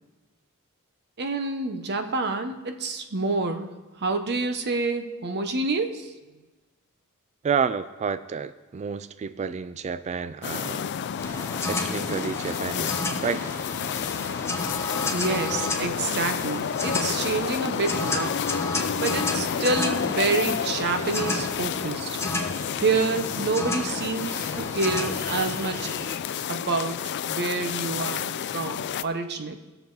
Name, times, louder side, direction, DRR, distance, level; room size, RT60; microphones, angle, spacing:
voice 1, 1.2-3.7 4.0-6.1 15.1-18.4 19.0-22.1 22.8-25.9 26.5-27.0 27.2-29.6, right 3 dB, 50° right, 7 dB, 0.9 m, -28 dB
voice 2, 7.4-10.8 11.7-13.5, right 6 dB, 30° right, 13 dB, 0.3 m, -30 dB
sound 1, 10.4-29.0, left 8 dB, 50° left, 0.4 m, -30 dB
sound 2, 11.2-26.2, left 2 dB, 10° left, 0.9 m, -33 dB
19.0 x 6.9 x 3.9 m, 1.2 s
head